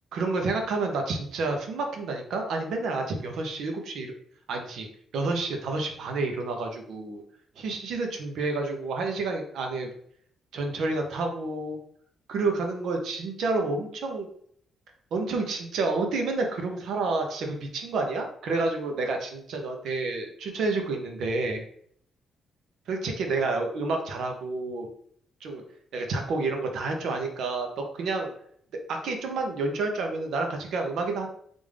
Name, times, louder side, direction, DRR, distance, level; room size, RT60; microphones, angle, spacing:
voice 1, 0.1-4.1 4.5-4.9 5.1-7.2 7.6-9.9 10.5-11.8 12.3-14.3 15.1-21.6 22.9-24.9 25.4-25.6 25.9-28.3 28.9-31.3, right 3 dB, 70° right, 3 dB, 0.7 m, -29 dB
3.5 x 2.5 x 3.3 m, 0.63 s
cardioid pair, 160°, 0 cm